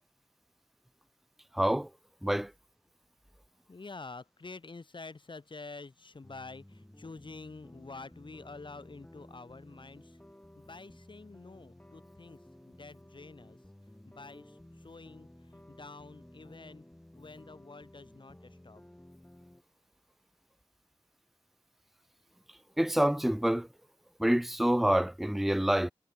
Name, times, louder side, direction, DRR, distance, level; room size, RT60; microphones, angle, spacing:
voice 1, 1.5-1.9 2.2-2.5 22.8-23.7 24.2-25.9, right 1 dB, ahead, 0.5 m, -27 dB
voice 2, 3.7-10.2 10.6-12.4 12.6-13.6 14.1-16.9 17.2-18.8, left 3 dB, 55° left, 1.8 m, -48 dB
sound 1, 6.2-19.6, left 1 dB, 15° left, 5.6 m, -55 dB
wide cardioid pair, 80°, 10 cm